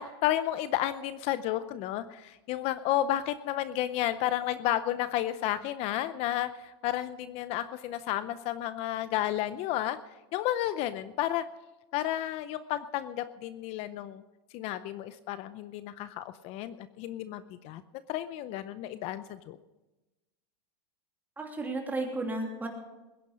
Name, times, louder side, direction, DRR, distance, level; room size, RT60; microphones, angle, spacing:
voice 1, 0.0-10.0 10.3-11.5 11.9-14.2 14.5-17.8 18.1-19.6, left 13 dB, 50° left, 13 dB, 0.6 m, -32 dB
voice 2, 21.4-22.7, right 2 dB, 10° right, 1 dB, 2.9 m, -33 dB
21.0 x 10.5 x 5.0 m, 1.1 s
supercardioid pair, 130°, 14 cm